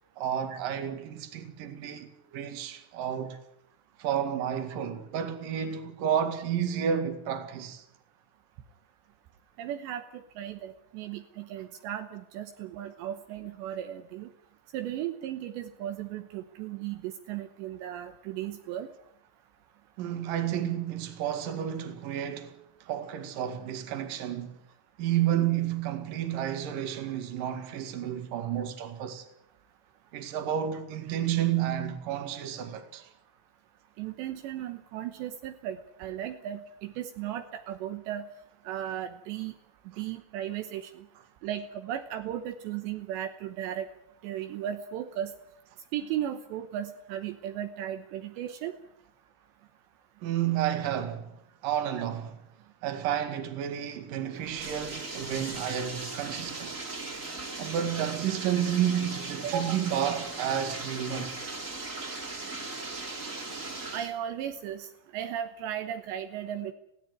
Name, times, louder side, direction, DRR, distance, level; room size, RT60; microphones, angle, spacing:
voice 1, 0.2-3.4 4.0-7.8 20.0-22.6 22.8-24.6 25.0-29.2 30.1-33.1 50.2-52.4 52.8-56.8 57.6-61.4, right 10 dB, 55° right, 3.3 m, -31 dB
voice 2, 9.6-14.3 14.7-18.9 34.0-38.3 38.6-39.6 40.0-41.1 41.4-43.9 44.2-45.3 45.9-48.7 59.4-59.8 63.9-64.9 65.1-66.7, right 10 dB, 75° right, 3.2 m, -36 dB
Bathtub (filling or washing), 54.4-64.1, right 3 dB, 20° right, 2.6 m, -38 dB
20.0 x 17.0 x 9.4 m
omnidirectional pair, 5.2 m